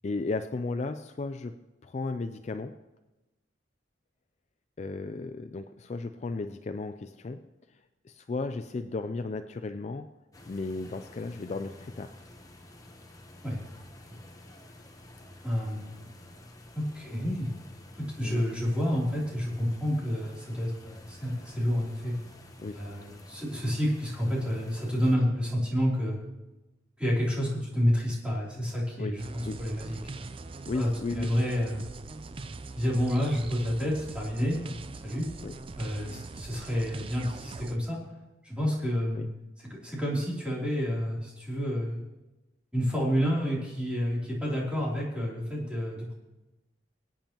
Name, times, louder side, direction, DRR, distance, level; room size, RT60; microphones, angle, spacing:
voice 1, 0.0-2.8 4.8-7.4 7.7-10.2 10.5-12.1 18.2-18.5 22.6-22.9 29.0-29.6 30.7-31.3 35.4-35.5 39.1-39.3, left 3 dB, 35° left, 9 dB, 0.3 m, -35 dB
sound 1, 10.3-25.2, left 1 dB, 20° left, 1.0 m, -50 dB
voice 2, 15.4-16.1 16.7-17.5 18.0-22.2 22.7-26.2 27.0-30.0 30.7-30.9 31.1-31.8 32.7-34.7 35.0-35.3 35.8-38.0 38.4-39.3 39.8-42.0 42.7-46.1, equal, 5° right, -5 dB, 3.1 m, -29 dB
sound 2, 29.2-37.8, right 3 dB, 30° right, 0.4 m, -42 dB
23.5 x 9.0 x 3.0 m, 1.1 s
head